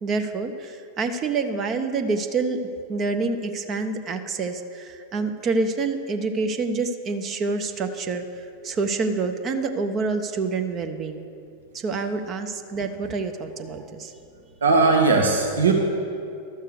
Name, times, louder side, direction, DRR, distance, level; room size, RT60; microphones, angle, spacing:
voice 1, 0.0-2.6 2.9-8.2 8.6-11.3 11.7-14.1, right 4 dB, 30° right, 7 dB, 0.6 m, -27 dB
voice 2, 14.6-15.7, right 4 dB, 70° right, 2 dB, 0.8 m, -18 dB
12.5 x 6.5 x 6.5 m, 2.5 s
figure-of-eight pair, 90°, 0 cm